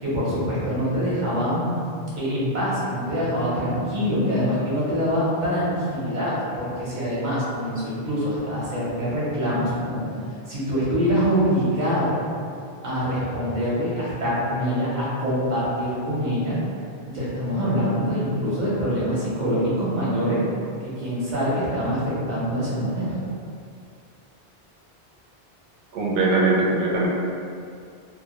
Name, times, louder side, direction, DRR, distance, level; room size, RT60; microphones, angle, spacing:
voice 1, 0.0-1.7 2.2-10.0 10.5-12.1 12.8-16.5 17.1-20.4 20.8-23.1, equal, 50° right, -8 dB, 0.8 m, -24 dB
voice 2, 25.9-27.1, right 2 dB, 85° right, -4 dB, 0.8 m, -21 dB
2.1 x 2.0 x 2.9 m, 2.4 s
omnidirectional pair, 1.1 m